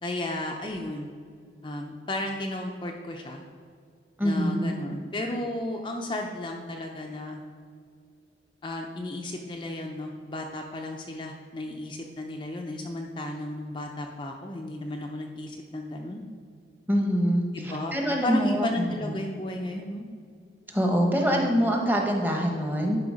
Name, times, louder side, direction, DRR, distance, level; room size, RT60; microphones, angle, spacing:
voice 1, 0.0-1.1 1.6-3.4 4.2-7.4 8.6-16.2 17.5-20.1 21.1-21.5, left 1 dB, 25° left, 2 dB, 0.5 m, -34 dB
voice 2, 4.2-4.8 16.9-19.1 20.7-23.0, equal, 10° right, 1 dB, 1.0 m, -25 dB
11.0 x 4.8 x 5.0 m, 2.2 s
head